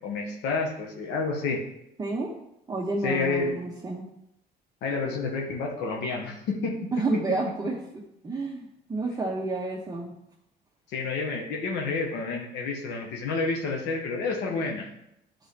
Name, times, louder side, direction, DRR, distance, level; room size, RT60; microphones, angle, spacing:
voice 1, 0.0-1.6 3.0-3.6 4.8-7.4 10.9-14.9, left 4 dB, 90° left, 0 dB, 1.3 m, -29 dB
voice 2, 2.0-2.3 2.7-4.0 6.9-10.1, right 3 dB, 20° right, -4 dB, 1.1 m, -30 dB
10.5 x 4.0 x 3.4 m, 0.80 s
cardioid pair, 110°, 17 cm